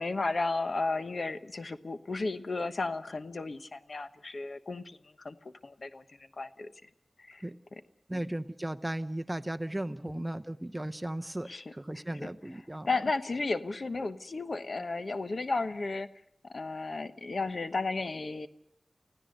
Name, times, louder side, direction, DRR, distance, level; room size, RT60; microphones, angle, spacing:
voice 1, 0.0-5.0 5.2-5.3 5.6-6.0 6.4-6.7 7.3-7.4 8.1-8.2 10.0-10.2 11.5-11.6 12.8-16.1 16.4-18.5, left 3 dB, 65° left, 10 dB, 1.1 m, -33 dB
voice 2, 8.1-12.9, right 1 dB, 15° right, 10 dB, 0.8 m, -36 dB
29.5 x 16.0 x 6.6 m, 0.76 s
wide cardioid pair, 80°, 0 cm